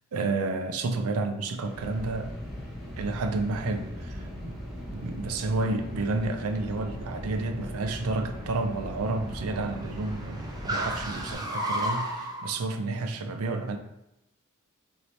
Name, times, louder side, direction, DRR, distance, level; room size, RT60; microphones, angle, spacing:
voice 1, 0.1-2.3 3.0-4.5 4.9-13.8, right 3 dB, 75° right, 5 dB, 0.5 m, -30 dB
sound 1, 1.5-11.3, equal, ahead, 0.9 m, -39 dB
Car, 3.7-12.6, right 1 dB, 20° right, 0.5 m, -37 dB
4.1 x 2.8 x 3.1 m, 0.87 s
head